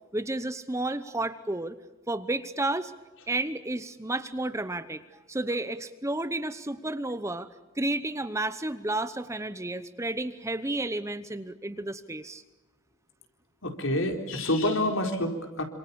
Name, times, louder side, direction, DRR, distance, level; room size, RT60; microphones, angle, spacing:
voice 1, 0.1-1.8 2.1-2.9 3.3-5.0 5.3-7.5 7.8-12.4, right 2 dB, 15° right, 12 dB, 0.9 m, -31 dB
voice 2, 13.6-15.6, left 1 dB, 65° left, 4 dB, 4.4 m, -27 dB
28.0 x 27.0 x 7.0 m, 1.1 s
head